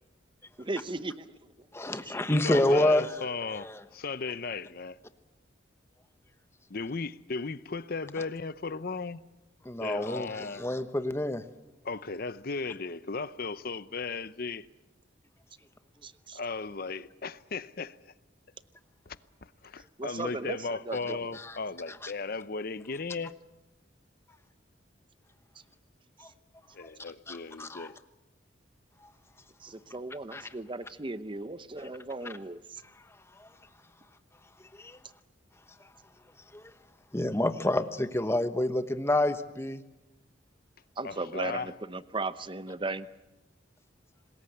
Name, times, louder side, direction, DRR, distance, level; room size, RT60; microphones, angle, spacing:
voice 1, 0.6-1.4 2.0-2.1 16.0-16.4 20.0-21.2 29.6-32.8 41.0-43.1, right 2 dB, 25° right, 0.8 m, -37 dB
voice 2, 1.7-3.8 9.6-11.4 22.0-22.1 26.2-26.3 27.3-27.9 30.3-30.4 33.4-33.5 34.8-35.0 36.5-36.6 37.1-39.8, left 1 dB, 15° left, 1.1 m, -28 dB
voice 3, 2.3-5.0 6.7-9.2 9.8-10.7 11.8-14.7 16.3-18.1 19.1-23.3 26.7-27.9 41.0-41.7, left 4 dB, 50° left, 0.8 m, -36 dB
26.0 x 20.5 x 8.0 m
head